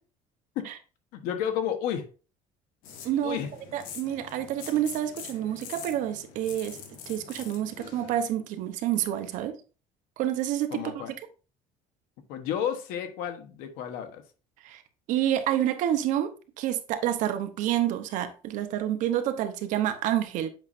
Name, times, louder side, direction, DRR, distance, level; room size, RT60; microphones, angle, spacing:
voice 1, 1.1-2.1 3.2-3.5 10.7-11.1 12.3-14.2, left 9 dB, 90° left, 1.1 m, -31 dB
sound 1, 2.8-8.3, left 7 dB, 75° left, 1.4 m, -44 dB
voice 2, 3.0-3.4 3.7-6.8 7.1-9.5 10.2-10.8 14.6-14.8 15.1-16.3 16.6-20.5, right 11 dB, 65° right, 0.9 m, -28 dB
8.0 x 5.4 x 2.6 m
cardioid pair, 160°, 14 cm